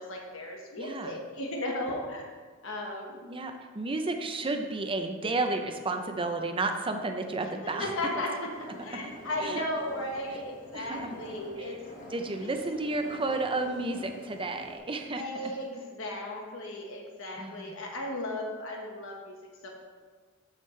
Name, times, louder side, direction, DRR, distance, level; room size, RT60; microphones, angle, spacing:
voice 1, 0.0-2.2 2.6-3.3 7.4-8.3 8.6-11.8 12.3-12.5 15.1-19.4 19.6-19.7, left 1 dB, 70° left, 0 dB, 1.4 m, -36 dB
voice 2, 0.8-1.2 3.3-7.9 9.4-9.7 10.7-11.2 11.6-11.8 12.1-15.5 17.4-17.7, right 2 dB, 25° right, 5 dB, 0.6 m, -32 dB
sound 1, 8.5-14.8, left 1 dB, 40° left, 1.6 m, -47 dB
12.0 x 5.1 x 3.2 m, 1.5 s
head